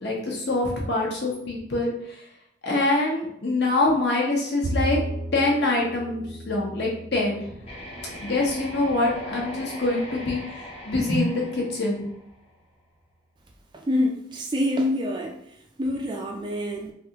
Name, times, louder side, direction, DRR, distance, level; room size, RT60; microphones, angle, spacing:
voice 1, 0.0-1.9 2.6-5.0 5.3-7.4 8.2-12.0, left 2 dB, 60° left, -2 dB, 0.9 m, -25 dB
Bowed string instrument, 4.6-11.0, right 1 dB, 80° right, 0.5 m, -36 dB
sound 1, 7.6-12.6, left 1 dB, 30° left, 0.6 m, -39 dB
voice 2, 13.7-15.4 15.8-16.9, left 1 dB, 25° right, 2 dB, 0.3 m, -26 dB
3.4 x 2.5 x 2.8 m, 0.76 s
head